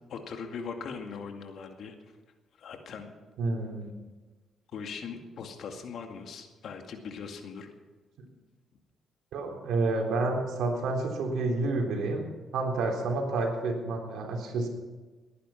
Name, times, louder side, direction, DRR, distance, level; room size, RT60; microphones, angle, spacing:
voice 1, 0.1-1.9 2.6-3.1 4.7-7.7, left 5 dB, 65° left, 4 dB, 2.2 m, -40 dB
voice 2, 3.4-3.9 9.3-12.3 12.5-14.7, right 3 dB, 80° right, 1 dB, 3.6 m, -29 dB
19.5 x 10.5 x 5.9 m, 1.3 s
cardioid pair, 90°, 0 cm